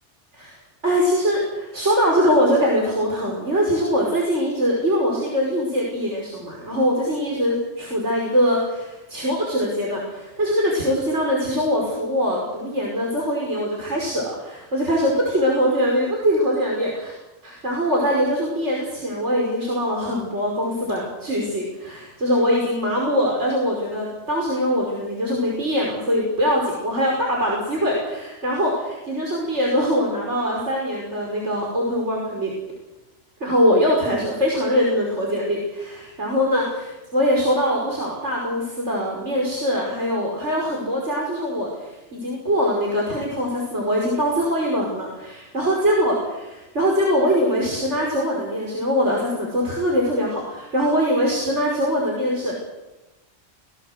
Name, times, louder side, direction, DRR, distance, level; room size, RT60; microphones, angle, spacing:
voice 1, 0.8-17.2 17.4-32.5 33.4-52.6, equal, 65° right, -2 dB, 5.8 m, -22 dB
27.0 x 18.0 x 8.1 m, 1.0 s
omnidirectional pair, 1.3 m